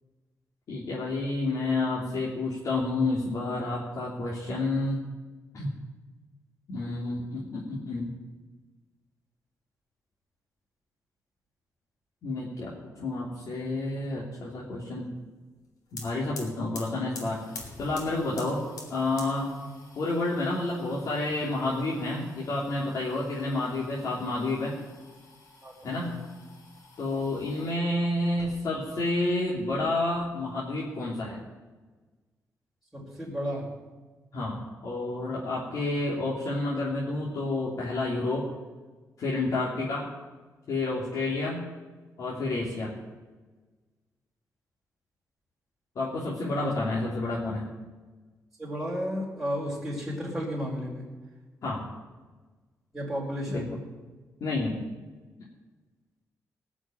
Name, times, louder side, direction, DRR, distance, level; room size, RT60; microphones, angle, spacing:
voice 1, 0.7-5.0 5.5-5.7 6.7-8.1 12.2-15.1 15.9-17.4 17.8-18.6 18.9-19.5 19.9-24.7 25.8-26.2 27.0-31.4 34.3-38.5 39.2-40.1 40.7-41.6 42.2-42.9 45.9-47.7 51.6-51.8 53.5-53.7 54.4-54.8, left 2 dB, 65° left, -5 dB, 3.0 m, -30 dB
sound 1, 15.6-15.7 15.9-27.8 28.3-29.0 29.3-30.3, left 3 dB, 85° left, 3.5 m, -48 dB
voice 2, 25.6-26.3 32.9-33.8 46.4-46.7 48.6-51.1 52.9-53.7, equal, 5° right, -9 dB, 4.6 m, -34 dB
18.5 x 6.3 x 9.2 m, 1.3 s
cardioid pair, 110°, 6 cm